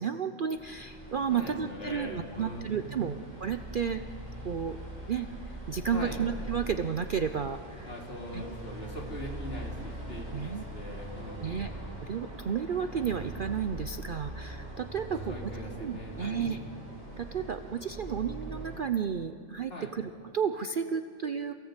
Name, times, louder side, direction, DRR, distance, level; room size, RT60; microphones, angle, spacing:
voice 1, 0.0-4.0 4.4-4.8 5.1-5.3 5.7-7.9 8.3-8.4 10.3-10.6 11.4-11.7 12.0-15.3 15.8-16.6 17.2-21.6, right 7 dB, 50° right, 8 dB, 0.7 m, -32 dB
sound 1, 0.5-18.9, right 1 dB, 30° right, 6.4 m, -42 dB
voice 2, 1.3-3.2 5.9-6.2 7.9-11.6 15.1-16.7 19.7-19.9, equal, 45° left, -1 dB, 3.5 m, -41 dB
27.0 x 17.0 x 8.2 m, 2.4 s
omnidirectional pair, 1.4 m